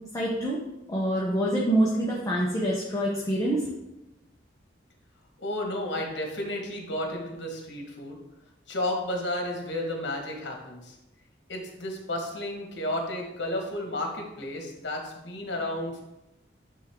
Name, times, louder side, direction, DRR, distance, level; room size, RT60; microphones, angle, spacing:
voice 1, 0.1-0.6 0.9-3.6, right 1 dB, 20° left, -4 dB, 1.0 m, -26 dB
voice 2, 5.4-8.2 8.7-10.9 11.5-16.0, left 1 dB, 70° left, 2 dB, 1.5 m, -32 dB
9.7 x 3.7 x 3.7 m, 0.92 s
head